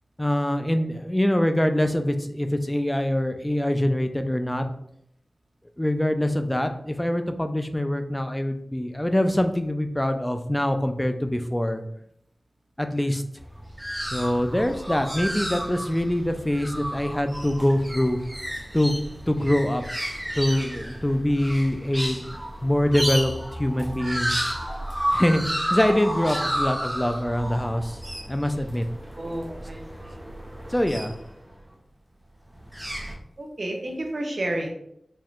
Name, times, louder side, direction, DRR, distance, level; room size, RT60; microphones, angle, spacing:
voice 1, 0.2-4.6 5.8-11.8 12.8-13.2 14.1-18.2 18.7-19.8 20.4-22.2 22.6-23.3 23.6-24.4 25.1-25.4 25.7-28.0 28.3-28.8 30.7-31.1, left 1 dB, 15° left, 7 dB, 0.4 m, -24 dB
sound 1, 13.4-31.6 32.5-33.1, equal, 10° right, 0.7 m, -32 dB
voice 2, 29.2-30.2 33.4-34.7, right 1 dB, 60° right, 2 dB, 0.7 m, -31 dB
4.4 x 3.0 x 2.4 m, 0.73 s
cardioid pair, 45°, 0 cm